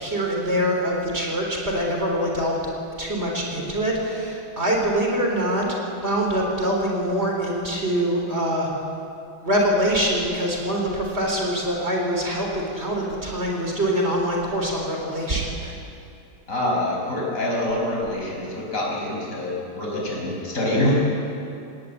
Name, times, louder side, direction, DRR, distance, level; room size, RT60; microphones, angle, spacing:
voice 1, 0.0-2.6 3.0-8.7 9.4-15.7, equal, 30° right, -1 dB, 4.0 m, -24 dB
voice 2, 16.5-20.9, left 1 dB, 35° left, -3 dB, 5.9 m, -25 dB
19.0 x 19.0 x 8.6 m, 2.6 s
omnidirectional pair, 2.3 m